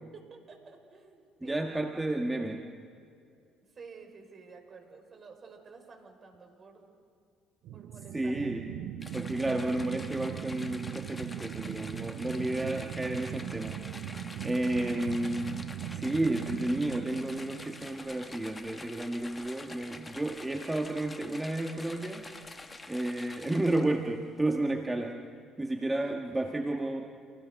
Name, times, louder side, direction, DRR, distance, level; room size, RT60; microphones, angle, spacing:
voice 1, 0.0-2.6 3.7-6.9 7.7-8.6 14.6-15.2 25.8-26.7, right 4 dB, 45° right, 4 dB, 6.1 m, -52 dB
voice 2, 1.4-2.7 8.1-8.6 9.1-13.8 14.4-15.6 15.9-22.3 22.9-25.3 25.6-27.1, right 1 dB, 15° right, 3 dB, 1.9 m, -31 dB
sound 1, 7.6-18.6, right 11 dB, 70° right, 0.7 m, -40 dB
sound 2, 9.0-24.1, left 2 dB, 20° left, 1.8 m, -47 dB
28.5 x 17.0 x 6.6 m, 2.4 s
hypercardioid pair, 60°, 0 cm